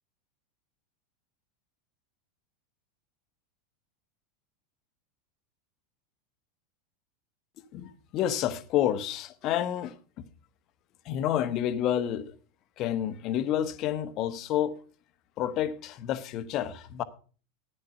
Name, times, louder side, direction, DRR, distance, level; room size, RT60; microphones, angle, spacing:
voice 1, 7.7-10.3 11.0-12.3 12.8-14.8 15.4-17.0, left 11 dB, 40° left, 1.2 m, -29 dB
14.5 x 10.0 x 5.8 m
figure-of-eight pair, 85°, 0 cm